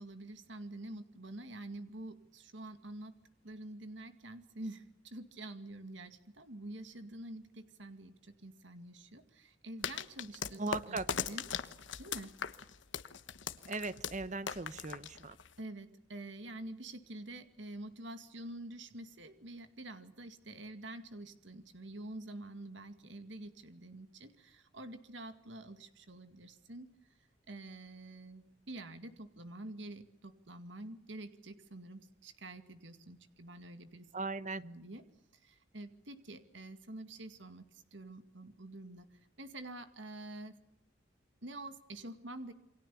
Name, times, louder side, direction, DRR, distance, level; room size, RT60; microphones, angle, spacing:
voice 1, 0.0-3.1 3.4-10.6 10.9-11.5 12.0-12.4 15.6-26.9 27.5-34.1 34.6-35.0 35.4-40.6 41.4-42.5, right 1 dB, 65° right, 9 dB, 2.2 m, -47 dB
sound 1, 9.8-15.6, left 7 dB, 70° left, 1.2 m, -40 dB
voice 2, 10.6-11.1 13.7-15.4 34.1-34.6, right 3 dB, 40° right, 15 dB, 1.0 m, -38 dB
28.5 x 24.0 x 7.0 m, 0.85 s
head